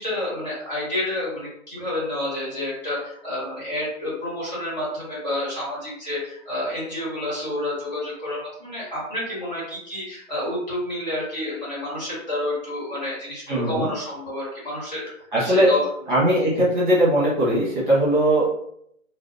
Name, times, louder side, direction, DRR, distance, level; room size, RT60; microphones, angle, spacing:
voice 1, 0.0-15.1 15.4-15.8, left 1 dB, 35° left, -7 dB, 1.2 m, -29 dB
voice 2, 13.5-13.9 15.3-15.7 16.1-18.5, right 1 dB, 40° right, -7 dB, 1.0 m, -19 dB
2.6 x 2.0 x 2.5 m, 0.70 s
hypercardioid pair, 175°, 39 cm